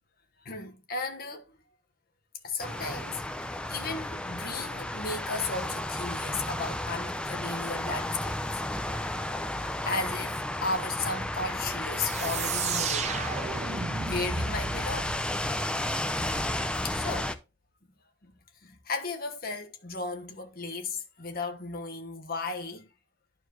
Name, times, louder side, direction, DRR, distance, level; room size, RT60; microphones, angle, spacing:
voice 1, 0.4-1.5 2.4-8.4 9.8-13.3 14.0-15.2 16.2-16.5 16.8-17.3 18.2-18.3 18.6-22.9, left 3 dB, 50° left, 1.3 m, -35 dB
sound 1, 2.6-17.4, left 1 dB, 5° left, 0.5 m, -33 dB
sound 2, 12.0-16.6, right 5 dB, 35° right, 0.7 m, -34 dB
11.5 x 4.6 x 3.0 m
head